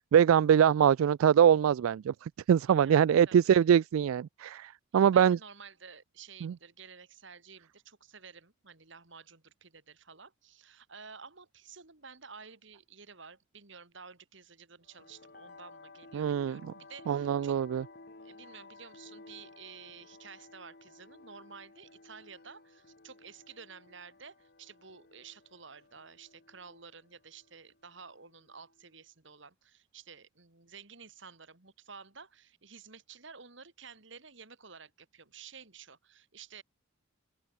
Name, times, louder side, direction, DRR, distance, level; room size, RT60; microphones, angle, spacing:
voice 1, 0.1-5.4 6.4-6.5 16.1-16.6 17.1-17.8, right 8 dB, 80° right, 0.3 m, -23 dB
voice 2, 2.7-3.4 4.9-17.6 18.2-36.6, right 5 dB, 60° right, 2.4 m, -52 dB
sound 1, 14.8-28.9, left 3 dB, 50° left, 1.5 m, -55 dB
open air
head